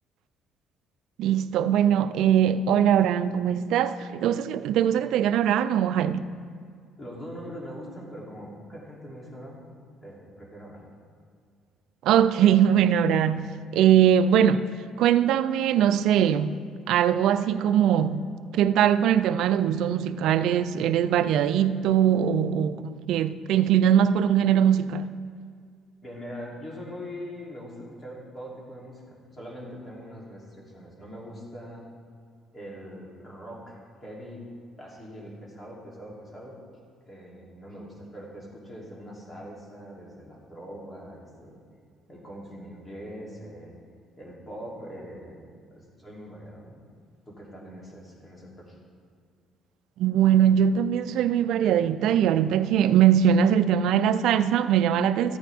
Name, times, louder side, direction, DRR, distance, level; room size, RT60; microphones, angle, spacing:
voice 1, 1.2-6.3 12.0-14.7 15.0-16.6 16.9-18.2 18.5-25.2 50.0-55.4, right 9 dB, 75° right, 0.4 m, -21 dB
voice 2, 7.0-9.6 10.0-10.8 26.0-31.8 32.5-34.4 34.8-36.6 37.1-41.6 42.1-43.8 44.2-45.5 45.7-46.8 47.3-48.8, equal, 20° left, 2.9 m, -42 dB
13.5 x 9.1 x 3.5 m
cardioid pair, 105°, 0 cm